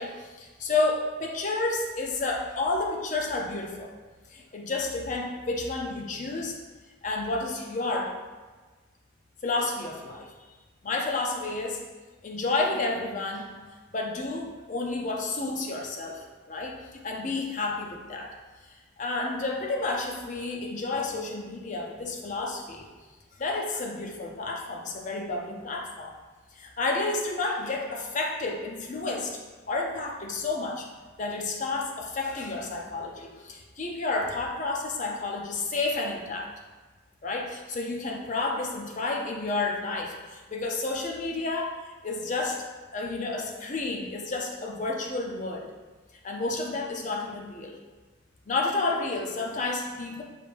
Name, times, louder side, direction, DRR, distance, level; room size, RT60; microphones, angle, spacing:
voice 1, 0.0-3.9 4.3-6.6 7.0-8.1 9.4-10.3 10.8-11.8 12.2-13.5 13.9-16.7 17.0-18.3 19.0-22.9 23.3-26.2 26.5-29.4 29.7-30.9 31.2-36.5 37.2-42.6 42.9-45.7 46.2-47.8 48.5-50.2, left 3 dB, 40° left, 1 dB, 0.5 m, -30 dB
4.9 x 3.4 x 2.5 m, 1.3 s
head